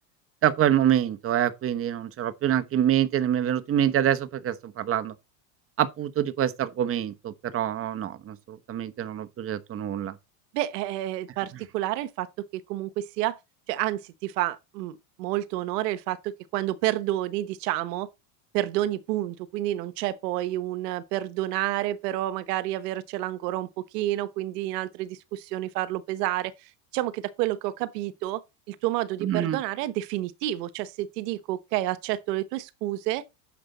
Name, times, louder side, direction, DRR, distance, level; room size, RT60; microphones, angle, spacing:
voice 1, 0.4-5.1 5.8-10.2 29.2-29.6, right 10 dB, 30° right, 1.1 m, -26 dB
voice 2, 10.5-13.4 13.7-18.1 18.5-28.4 28.7-33.2, right 15 dB, 75° right, 1.1 m, -29 dB
9.8 x 6.8 x 4.1 m
supercardioid pair, 125°, 48 cm